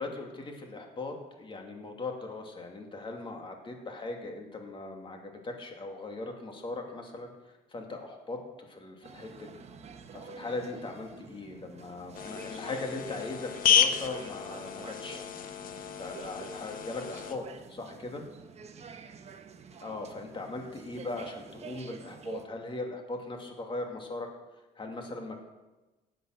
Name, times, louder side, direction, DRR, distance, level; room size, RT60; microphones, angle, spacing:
voice 1, 0.0-7.3 7.7-9.6 10.1-15.2 16.0-18.2 19.8-24.3 24.8-25.4, left 2 dB, 30° left, 3 dB, 2.8 m, -39 dB
sound 1, 9.0-22.4, right 6 dB, 40° right, 1.2 m, -48 dB
sound 2, 12.1-17.4, left 8 dB, 55° left, 1.4 m, -31 dB
17.0 x 8.0 x 6.7 m, 1.1 s
cardioid pair, 110°, 17 cm